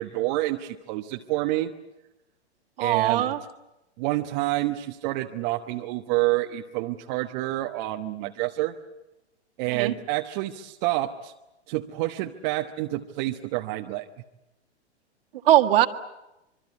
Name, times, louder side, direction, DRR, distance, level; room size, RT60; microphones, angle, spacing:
voice 1, 0.0-1.7 2.8-3.3 4.0-8.7 9.6-11.3 11.7-14.0, right 17 dB, 40° right, 4 dB, 1.2 m, -28 dB
voice 2, 2.8-3.4 9.7-9.9 15.4-15.9, right 13 dB, 55° right, 8 dB, 1.8 m, -20 dB
25.5 x 23.5 x 8.5 m, 0.95 s
figure-of-eight pair, 110°, 34 cm